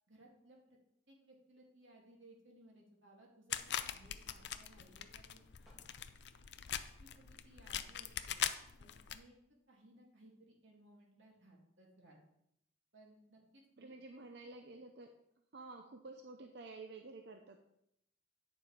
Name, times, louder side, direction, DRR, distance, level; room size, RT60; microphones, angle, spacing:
voice 1, 0.1-0.8 1.1-5.4 7.0-8.4 8.8-9.4 9.7-12.2 12.9-14.0, right 1 dB, 70° right, -2 dB, 2.8 m, -62 dB
sound 1, 3.5-9.2, left 10 dB, 55° left, 0.5 m, -42 dB
sound 2, 5.6-6.6 8.7-9.5 10.3-10.4, equal, ahead, 2.5 m, -69 dB
voice 2, 13.8-15.2 15.5-17.6, right 3 dB, 55° right, 5 dB, 0.7 m, -51 dB
9.2 x 6.8 x 5.0 m, 0.78 s
head